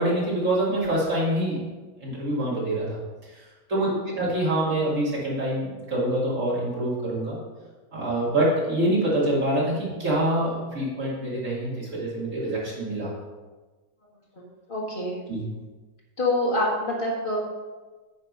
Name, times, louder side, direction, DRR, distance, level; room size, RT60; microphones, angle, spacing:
voice 1, 0.0-1.6 2.0-2.9 3.7-3.9 4.2-7.4 7.9-13.1 15.3-15.4, right 1 dB, 40° right, -6 dB, 2.8 m, -25 dB
voice 2, 14.7-15.2 16.2-17.4, left 1 dB, 30° left, -5 dB, 2.0 m, -26 dB
9.5 x 4.3 x 5.5 m, 1.3 s
omnidirectional pair, 2.0 m